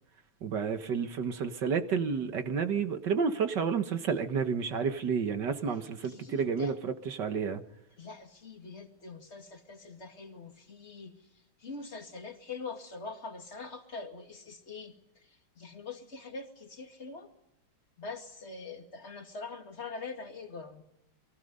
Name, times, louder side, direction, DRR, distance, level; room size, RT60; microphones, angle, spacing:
voice 1, 0.4-7.6, right 6 dB, 55° right, 1.9 m, -30 dB
voice 2, 6.0-6.8 8.0-11.1 11.6-14.9 15.6-17.3 18.0-20.8, left 4 dB, 30° left, 2.4 m, -43 dB
30.0 x 23.0 x 5.5 m
omnidirectional pair, 2.4 m